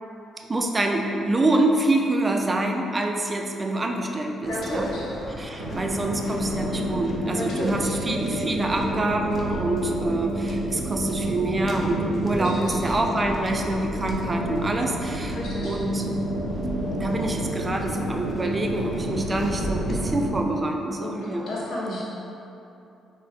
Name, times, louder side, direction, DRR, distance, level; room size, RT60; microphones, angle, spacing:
voice 1, 0.5-4.9 5.4-15.4 15.6-16.0 17.0-21.5 21.9-22.0, right 2 dB, 25° right, 2 dB, 0.3 m, -26 dB
Waves surf, 4.4-20.2, equal, 35° left, 0.6 m, -38 dB
voice 2, 4.5-5.1 7.3-8.0 12.4-12.8 15.3-15.8 21.0-22.0, equal, 70° left, -6 dB, 0.9 m, -32 dB
sound 1, 5.6-20.4, right 1 dB, 90° right, 0.5 m, -30 dB
3.1 x 2.1 x 4.0 m, 2.8 s
cardioid pair, 90°, 0 cm